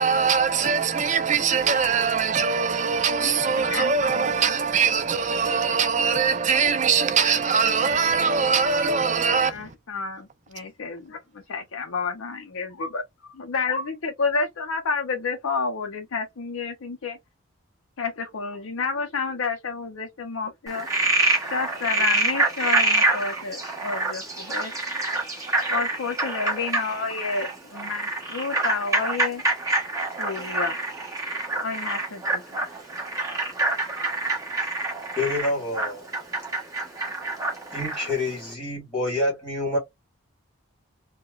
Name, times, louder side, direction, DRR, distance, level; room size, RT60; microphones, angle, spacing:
voice 1, 0.0-9.7, right 6 dB, 35° right, 0.5 m, -22 dB
voice 2, 3.2-4.5 9.5-13.0 13.3-17.2 18.0-20.9 21.4-24.7 25.7-29.4 30.2-30.8 31.6-32.6, left 4 dB, 65° left, 0.5 m, -30 dB
Frog, 20.7-38.1, right 2 dB, 15° right, 1.2 m, -26 dB
voice 3, 35.2-36.1 37.7-39.8, left 2 dB, 5° left, 1.8 m, -27 dB
4.6 x 2.2 x 2.3 m
head